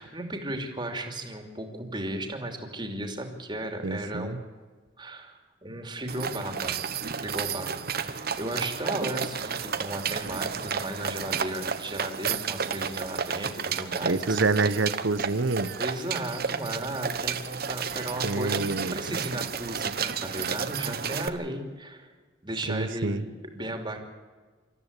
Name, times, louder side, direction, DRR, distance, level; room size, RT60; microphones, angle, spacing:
voice 1, 0.0-4.5 5.0-6.8 7.2-14.4 15.8-22.1 22.4-24.0, right 1 dB, 25° right, 4 dB, 2.9 m, -35 dB
voice 2, 3.8-4.4 14.0-15.7 18.2-18.9 22.7-23.2, right 3 dB, 85° right, 13 dB, 1.0 m, -27 dB
sound 1, 6.1-21.3, right 6 dB, 55° right, 1.1 m, -32 dB
26.5 x 14.0 x 8.3 m, 1.4 s
head